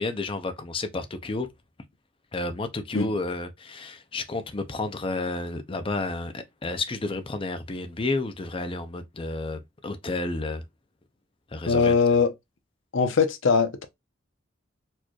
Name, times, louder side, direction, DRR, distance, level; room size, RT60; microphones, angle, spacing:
voice 1, 0.0-1.5 2.3-10.6 11.5-11.9, left 2 dB, 25° left, 0.5 m, -31 dB
voice 2, 11.7-12.3 12.9-13.9, left 5 dB, 70° left, 0.7 m, -21 dB
4.3 x 3.0 x 2.3 m
head